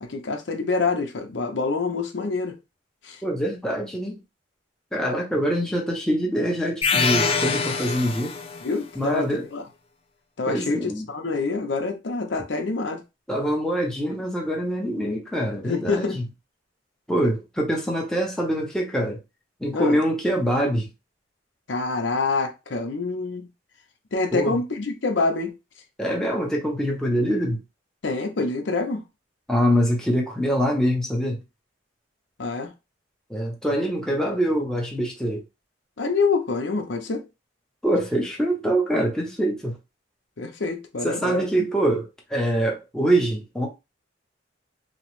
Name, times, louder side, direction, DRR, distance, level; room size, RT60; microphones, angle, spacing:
voice 1, 0.0-2.6 3.0-3.2 8.6-9.6 10.4-13.0 15.6-16.2 19.7-20.0 21.7-23.5 24.1-25.5 28.0-29.0 32.4-32.7 36.0-37.3 40.4-41.5, left 3 dB, 75° left, 0.7 m, -26 dB
voice 2, 3.2-4.2 4.9-8.4 8.9-9.5 10.5-11.0 13.3-16.2 17.1-19.2 19.6-20.9 24.3-24.6 26.0-27.6 29.5-31.4 33.3-35.4 37.8-39.8 41.0-43.7, equal, 5° left, 0.7 m, -24 dB
sound 1, 6.8-8.7, left 5 dB, 30° left, 0.3 m, -24 dB
3.0 x 2.1 x 3.0 m
head